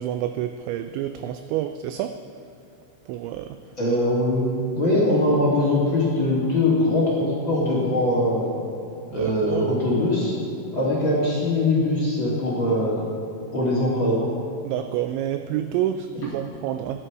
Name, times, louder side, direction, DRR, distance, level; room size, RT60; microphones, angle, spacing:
voice 1, 0.0-2.2 3.1-3.6 8.8-9.7 14.6-17.0, right 11 dB, 85° right, 9 dB, 2.6 m, -28 dB
voice 2, 3.8-8.5 9.1-10.3 10.7-13.0 13.5-14.3, left 1 dB, 30° left, -6 dB, 2.6 m, -22 dB
17.0 x 11.0 x 4.9 m, 2.9 s
omnidirectional pair, 5.8 m